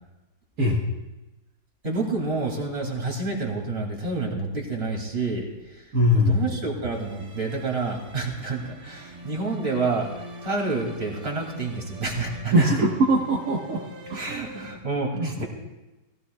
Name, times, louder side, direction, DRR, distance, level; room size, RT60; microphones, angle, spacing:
voice 1, 1.8-12.7 14.1-15.4, right 3 dB, 35° right, 0 dB, 2.8 m, -29 dB
voice 2, 5.9-6.4 12.5-13.8 14.1-14.4 15.1-15.4, equal, 60° right, -3 dB, 1.8 m, -21 dB
sound 1, 6.9-14.7, right 1 dB, 85° right, 2.1 m, -43 dB
18.5 x 16.0 x 2.3 m, 1.1 s
omnidirectional pair, 1.8 m